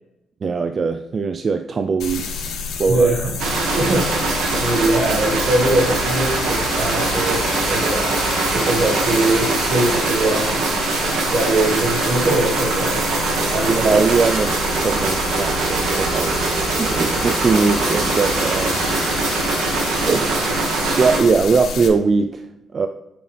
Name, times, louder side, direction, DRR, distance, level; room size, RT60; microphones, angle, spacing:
voice 1, 0.4-2.5 2.8-3.1 13.7-16.4 16.8-18.8 20.1-20.5 21.0-22.5 22.7-22.9, right 4 dB, 35° right, 7 dB, 0.4 m, -20 dB
sound 1, 2.0-21.9, left 4 dB, 80° left, 1.7 m, -28 dB
voice 2, 2.9-8.2 8.5-10.7 11.3-13.1 13.5-14.0, right 2 dB, 55° right, -3 dB, 1.6 m, -22 dB
sound 2, 3.4-21.2, right 3 dB, 80° right, 1.7 m, -22 dB
8.5 x 6.9 x 3.4 m, 0.92 s
cardioid pair, 120°, 0 cm